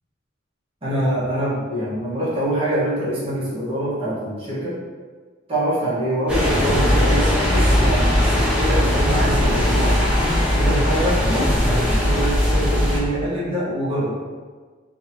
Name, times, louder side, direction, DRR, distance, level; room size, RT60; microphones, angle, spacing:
voice 1, 0.8-4.8 5.5-10.1 10.5-11.4 11.8-14.2, right 1 dB, 30° right, -10 dB, 1.1 m, -25 dB
sound 1, 6.3-13.0, left 1 dB, 5° right, 0.7 m, -19 dB
3.8 x 2.7 x 2.7 m, 1.5 s
head